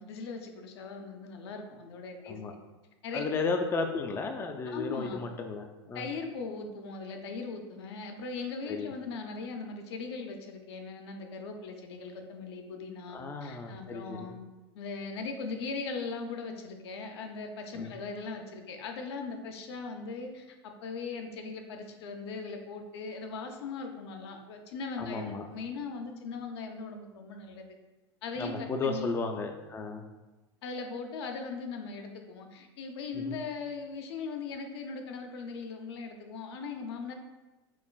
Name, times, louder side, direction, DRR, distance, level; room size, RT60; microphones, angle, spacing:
voice 1, 0.0-2.4 3.0-3.5 4.7-5.3 5.9-14.4 14.7-27.7 28.2-29.1 30.6-37.1, left 4 dB, 70° left, 4 dB, 0.6 m, -39 dB
voice 2, 3.1-6.1 8.7-8.9 13.1-14.3 17.7-17.9 25.0-25.5 28.4-30.0 33.1-33.4, left 4 dB, 15° left, 5 dB, 0.3 m, -34 dB
4.7 x 3.0 x 2.2 m, 1.1 s
hypercardioid pair, 90°, 14 cm